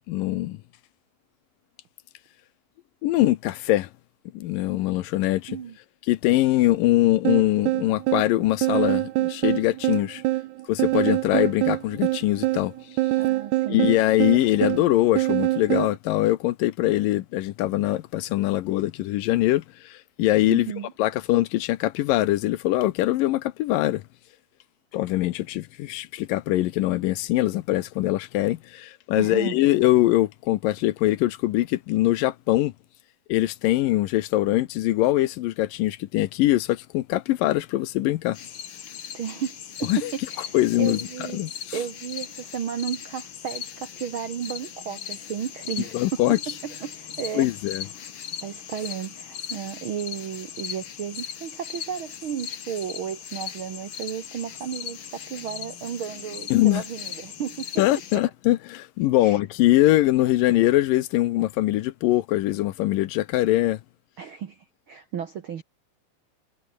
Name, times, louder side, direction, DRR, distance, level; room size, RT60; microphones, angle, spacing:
voice 1, 0.1-0.6 3.0-3.9 4.3-5.6 6.1-10.2 10.7-12.7 13.7-20.7 21.0-24.0 24.9-32.7 33.3-38.4 39.9-40.1 40.5-41.0 41.3-41.5 45.9-46.4 47.3-47.9 56.5-56.8 57.8-63.8, left 16 dB, 75° left, 2.4 m, -22 dB
sound 1, 7.2-15.9, right 17 dB, 85° right, 1.6 m, -25 dB
voice 2, 13.2-13.9 14.3-14.9 20.5-20.9 29.2-29.6 39.1-47.5 48.4-57.9 59.2-59.4 60.2-60.3 64.2-65.6, right 8 dB, 70° right, 1.2 m, -34 dB
sound 2, 38.3-58.2, left 8 dB, 50° left, 1.6 m, -38 dB
omnidirectional pair, 4.2 m